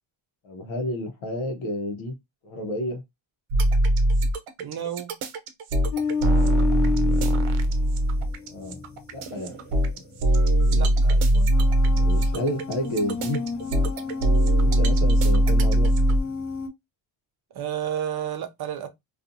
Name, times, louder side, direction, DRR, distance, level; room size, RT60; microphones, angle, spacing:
voice 1, 0.4-2.1 2.4-3.0 6.4-6.5 8.5-8.8 9.1-9.6 12.0-13.4 14.6-15.9, left 1 dB, 75° left, 0.8 m, -30 dB
sound 1, 3.5-16.2, right 1 dB, 90° right, 0.7 m, -21 dB
voice 2, 4.6-5.1 10.7-11.5 17.5-18.9, right 9 dB, 50° right, 0.5 m, -31 dB
sound 2, 5.9-16.7, left 5 dB, 40° left, 0.4 m, -32 dB
2.6 x 2.4 x 2.5 m
wide cardioid pair, 145°, 50 cm